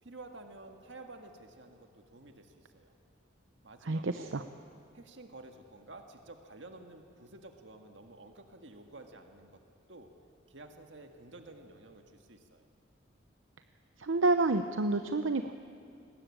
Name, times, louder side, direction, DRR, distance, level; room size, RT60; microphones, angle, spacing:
voice 1, 0.0-2.9 3.6-4.4 4.9-9.6 9.9-10.1 10.5-12.7, right 2 dB, 70° right, 5 dB, 1.8 m, -51 dB
voice 2, 3.8-4.4 14.0-15.5, right 2 dB, 85° right, 9 dB, 0.8 m, -29 dB
22.5 x 20.0 x 8.7 m, 2.5 s
head